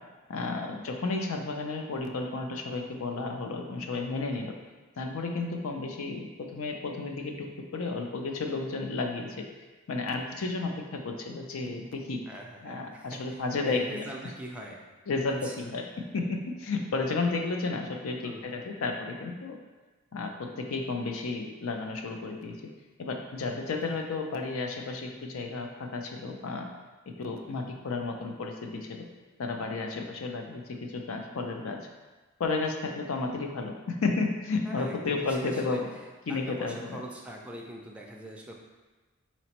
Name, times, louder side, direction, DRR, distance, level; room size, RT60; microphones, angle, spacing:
voice 1, 0.3-4.6 5.0-9.4 9.9-12.2 12.6-14.0 15.1-15.8 16.1-19.6 20.1-22.6 23.0-26.7 27.2-29.1 29.4-31.8 32.4-35.9 36.3-37.0, left 3 dB, 65° left, 3 dB, 0.5 m, -32 dB
voice 2, 12.3-14.8 15.3-15.6 18.2-18.5 23.8-24.0 29.8-30.2 34.7-35.8 36.3-38.5, right 1 dB, 5° right, -1 dB, 0.4 m, -43 dB
4.1 x 3.0 x 2.9 m, 1.3 s
head